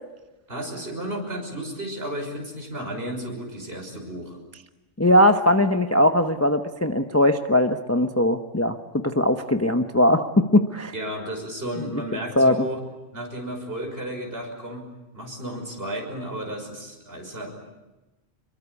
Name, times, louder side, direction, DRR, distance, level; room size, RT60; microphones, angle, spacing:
voice 1, 0.5-4.4 10.9-12.8 13.1-14.9 15.1-17.5, right 1 dB, 50° right, 3 dB, 6.4 m, -33 dB
voice 2, 5.0-10.9 12.4-12.6, left 1 dB, 15° left, 7 dB, 0.9 m, -20 dB
26.5 x 23.0 x 8.4 m, 1.1 s
omnidirectional pair, 1.3 m